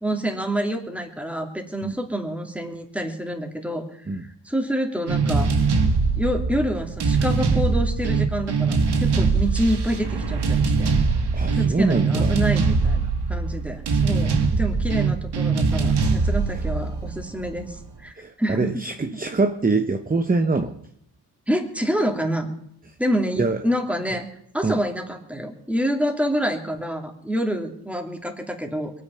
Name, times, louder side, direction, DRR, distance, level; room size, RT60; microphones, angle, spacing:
voice 1, 0.0-5.5 6.2-10.9 11.5-18.8 21.5-22.5 23.0-24.3 24.5-28.9, equal, 5° right, 4 dB, 2.8 m, -27 dB
sound 1, 5.1-17.8, right 4 dB, 65° right, 1.9 m, -22 dB
voice 2, 11.3-12.3 18.2-20.7 23.4-23.6 24.6-24.8, right 3 dB, 20° right, 7 dB, 1.0 m, -24 dB
22.5 x 9.6 x 5.7 m, 0.70 s
cardioid pair, 80°, 42 cm